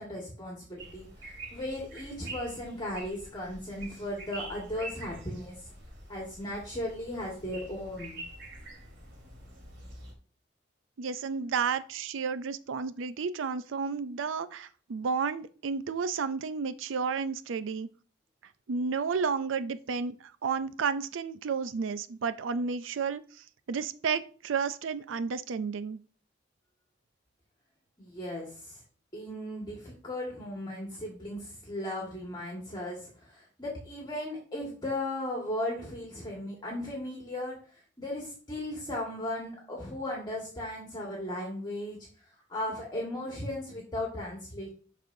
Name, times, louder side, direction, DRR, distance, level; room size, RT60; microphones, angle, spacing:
voice 1, 0.0-5.7 6.1-8.2 28.0-28.8 29.1-42.0 42.5-44.7, left 1 dB, 20° left, 1.8 m, -36 dB
sound 1, 0.8-10.1, right 2 dB, 65° right, 2.5 m, -46 dB
voice 2, 11.0-17.9 18.7-26.0, right 5 dB, 90° right, 0.4 m, -32 dB
11.5 x 4.2 x 2.7 m
head